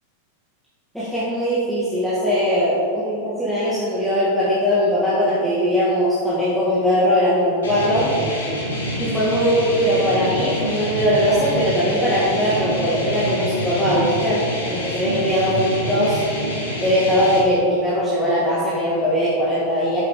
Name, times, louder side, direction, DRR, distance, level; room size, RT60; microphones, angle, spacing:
voice 1, 0.9-8.1 9.0-16.2 16.8-20.0, equal, ahead, -10 dB, 1.9 m, -20 dB
sound 1, 7.6-17.4, equal, 70° left, 2.2 m, -26 dB
8.5 x 7.8 x 3.7 m, 2.5 s
figure-of-eight pair, 90°, 0 cm